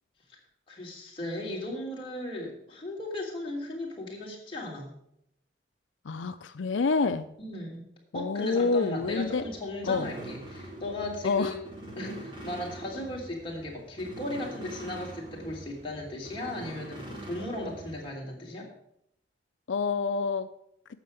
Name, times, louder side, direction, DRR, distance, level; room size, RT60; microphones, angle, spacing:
voice 1, 0.7-4.9 7.4-7.9 8.1-11.5 11.9-18.7, left 1 dB, 30° left, -3 dB, 3.2 m, -36 dB
voice 2, 6.0-7.3 8.1-9.4 9.8-10.1 11.2-11.5 19.7-20.5, left 4 dB, 85° left, 10 dB, 0.5 m, -27 dB
sound 1, 9.0-18.1, right 1 dB, 25° right, 2.7 m, -44 dB
9.0 x 6.8 x 7.7 m, 0.75 s
head